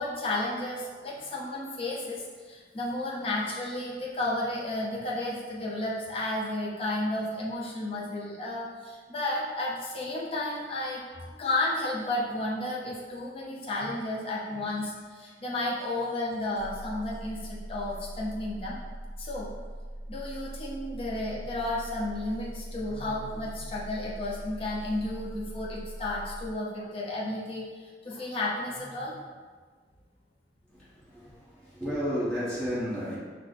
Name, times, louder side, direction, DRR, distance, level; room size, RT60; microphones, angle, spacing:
voice 1, 0.0-18.8 19.2-19.6 20.1-29.2, left 1 dB, 30° left, -5 dB, 0.6 m, -32 dB
sound 1, 16.5-26.6, right 1 dB, 65° right, 0.7 m, -41 dB
voice 2, 30.7-33.2, equal, 5° left, -11 dB, 1.2 m, -32 dB
4.7 x 2.2 x 4.0 m, 1.5 s
head